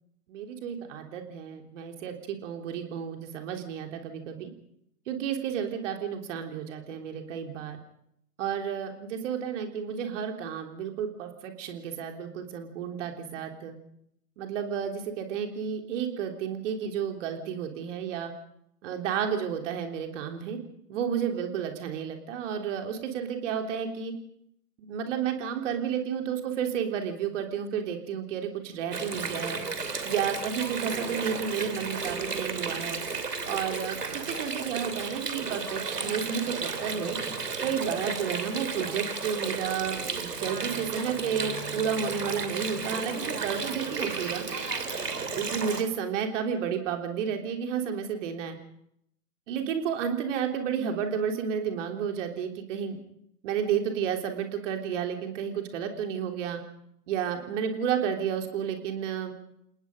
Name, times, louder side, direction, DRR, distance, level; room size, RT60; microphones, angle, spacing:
voice 1, 0.3-4.5 5.1-7.8 8.4-13.7 14.4-18.3 18.8-20.6 20.9-24.1 24.8-29.6 30.1-33.0 33.5-37.2 37.6-44.4 45.3-48.6 49.5-53.0 53.4-56.6 57.1-59.3, right 7 dB, 50° right, 4 dB, 3.5 m, -31 dB
Water, 28.9-45.8, right 4 dB, 75° right, 3.0 m, -33 dB
29.5 x 19.0 x 5.2 m, 0.75 s
figure-of-eight pair, 105°, 48 cm